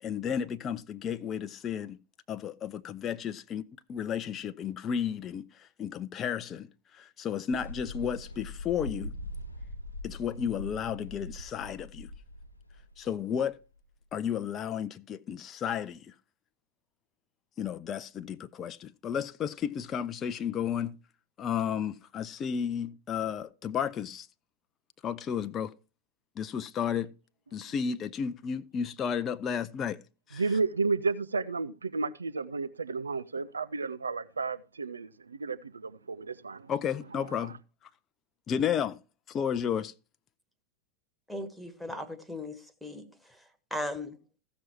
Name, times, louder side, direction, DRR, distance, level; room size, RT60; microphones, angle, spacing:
voice 1, 0.0-2.0 2.3-6.7 6.9-9.1 10.0-12.1 13.0-13.6 14.1-16.1 17.6-20.9 21.4-24.3 25.0-25.7 26.4-27.1 27.5-30.0 30.3-30.4 36.7-37.6 38.5-39.0 39.3-39.9, left 8 dB, 25° left, 0.5 m, -33 dB
sound 1, 7.5-14.1, left 1 dB, 85° left, 1.0 m, -42 dB
voice 2, 30.3-36.7 37.3-37.5, right 4 dB, 75° right, 0.5 m, -32 dB
voice 3, 41.3-43.1 43.7-44.2, left 1 dB, ahead, 1.4 m, -37 dB
15.0 x 6.1 x 4.4 m
figure-of-eight pair, 90°, 0 cm